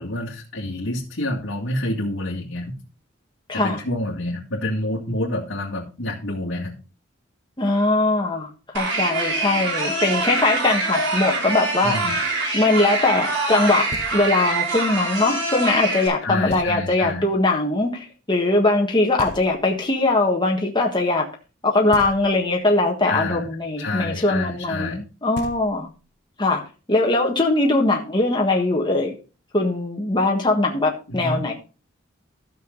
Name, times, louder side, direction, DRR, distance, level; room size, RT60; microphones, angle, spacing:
voice 1, 0.0-2.7 3.5-6.7 11.8-12.1 16.2-17.2 23.1-23.5 23.8-25.0 31.1-31.5, left 1 dB, 85° left, -5 dB, 2.3 m, -28 dB
voice 2, 3.5-3.8 7.6-12.0 12.5-21.2 21.6-25.9 26.4-26.6 26.9-29.1 29.5-31.5, left 2 dB, 25° left, 0 dB, 1.5 m, -21 dB
sound 1, 8.7-16.1, right 2 dB, 70° right, 5.0 m, -25 dB
Knock, 13.9-14.6 16.5-17.2 19.2-20.0 21.9-22.7 25.0-25.1 25.3-26.2, left 1 dB, 55° left, 1.4 m, -39 dB
13.0 x 6.9 x 3.9 m, 0.34 s
head